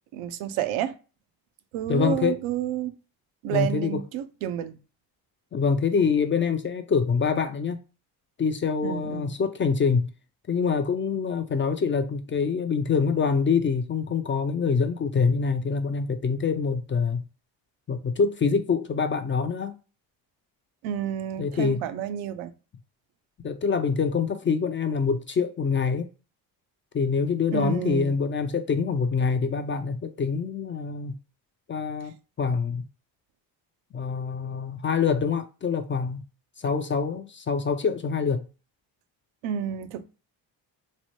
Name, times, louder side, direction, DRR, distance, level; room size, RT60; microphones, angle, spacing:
voice 1, 0.1-1.0 1.7-3.0 3.4-4.8 8.8-9.3 20.8-22.5 27.5-28.1 39.4-40.0, right 10 dB, 75° right, 0.6 m, -30 dB
voice 2, 1.9-2.4 3.5-4.0 5.5-7.8 8.4-10.1 10.5-17.3 17.9-19.8 21.4-21.8 23.4-26.1 26.9-31.1 31.7-32.9 33.9-36.2 36.6-38.4, left 5 dB, 25° left, 0.4 m, -25 dB
3.1 x 2.0 x 2.9 m
supercardioid pair, 60°, 48 cm